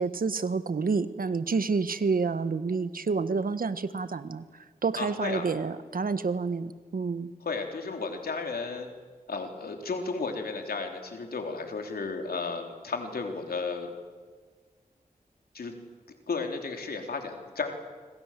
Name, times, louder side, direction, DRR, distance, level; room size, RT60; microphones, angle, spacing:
voice 1, 0.0-4.4 4.8-7.3, right 4 dB, 70° right, 12 dB, 1.5 m, -29 dB
voice 2, 5.0-5.5 7.4-8.9 9.3-13.9 15.5-15.7 16.1-17.7, left 4 dB, 90° left, 4 dB, 3.8 m, -33 dB
27.0 x 25.0 x 7.6 m, 1.5 s
cardioid pair, 55°, 15 cm